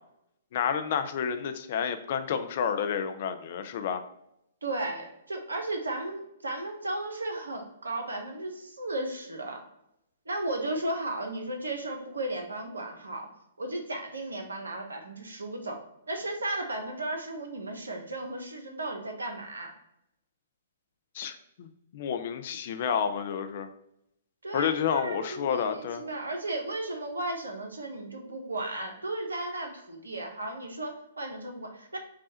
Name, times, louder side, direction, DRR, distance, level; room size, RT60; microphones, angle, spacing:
voice 1, 0.5-4.0 21.1-21.7 21.9-23.7 24.5-26.0, left 7 dB, 50° left, 9 dB, 0.5 m, -30 dB
voice 2, 4.6-9.6 10.3-13.3 13.6-15.8 16.1-19.7 24.4-32.0, right 2 dB, 80° right, 3 dB, 0.9 m, -35 dB
4.9 x 2.4 x 4.1 m, 0.81 s
figure-of-eight pair, 120°, 0 cm